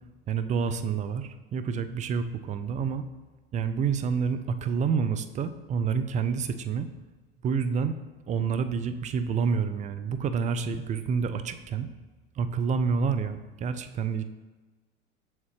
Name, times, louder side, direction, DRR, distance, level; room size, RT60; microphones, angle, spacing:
voice 1, 0.3-3.0 3.5-6.9 7.4-7.9 8.3-11.9 12.4-14.2, right 6 dB, 25° right, 10 dB, 0.4 m, -28 dB
6.9 x 4.2 x 3.3 m, 1.2 s
hypercardioid pair, 95°, 30 cm